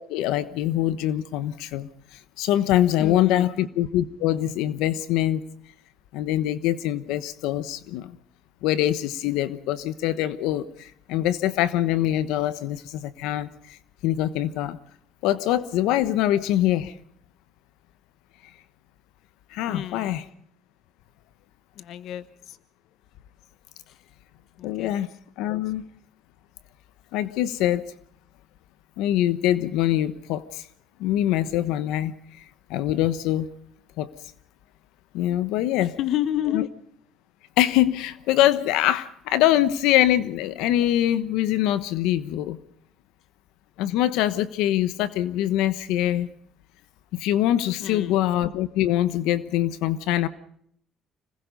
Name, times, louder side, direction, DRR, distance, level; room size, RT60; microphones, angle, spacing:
voice 1, 0.0-1.9 2.4-5.4 6.1-8.2 8.6-13.8 14.0-14.8 15.2-16.9 19.5-20.2 24.6-25.1 25.4-25.8 27.1-27.8 29.0-30.6 31.0-32.1 32.7-33.5 34.0-34.1 35.1-35.9 36.5-36.6 37.6-42.6 43.8-46.3 47.1-50.3, left 13 dB, 90° left, 14 dB, 1.1 m, -24 dB
voice 2, 3.0-3.5 19.7-20.2 21.8-22.6 24.6-24.9 25.4-25.5 35.8-36.7 47.8-48.2, left 11 dB, 65° left, 14 dB, 1.0 m, -30 dB
26.0 x 20.0 x 5.3 m, 0.66 s
cardioid pair, 110°, 0 cm